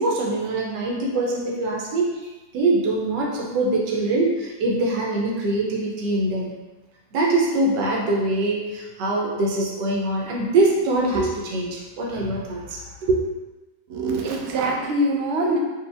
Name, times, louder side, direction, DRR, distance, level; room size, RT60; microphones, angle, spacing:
voice 1, 0.0-2.1 2.5-6.5 7.1-13.2, right 2 dB, 80° right, -2 dB, 1.4 m, -23 dB
voice 2, 13.9-15.6, right 1 dB, 60° right, -1 dB, 0.7 m, -23 dB
4.6 x 2.9 x 3.4 m, 1.1 s
omnidirectional pair, 1.9 m